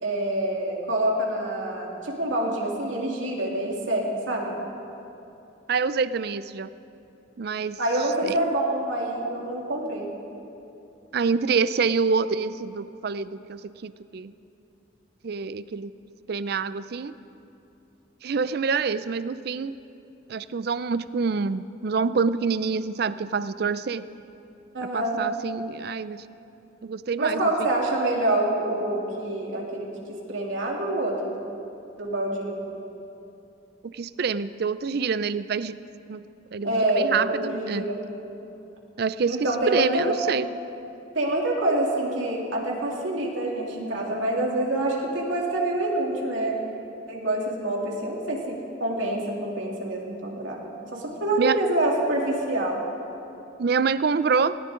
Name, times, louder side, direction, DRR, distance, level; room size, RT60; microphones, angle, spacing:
voice 1, 0.0-4.6 7.8-10.1 24.7-25.2 27.2-31.4 32.0-32.6 36.6-38.0 39.3-40.1 41.1-46.5 47.1-50.6 50.9-52.8, right 1 dB, 90° right, -2 dB, 2.9 m, -26 dB
voice 2, 5.7-6.7 7.4-7.8 8.2-8.4 11.1-14.3 15.2-15.9 16.3-17.1 18.2-19.8 20.3-24.0 24.9-26.2 26.8-27.7 33.8-35.8 36.1-36.2 36.5-37.9 39.0-40.5 51.4-51.6 53.6-54.6, right 5 dB, 55° right, 15 dB, 0.4 m, -26 dB
19.5 x 18.0 x 3.8 m, 2.8 s
head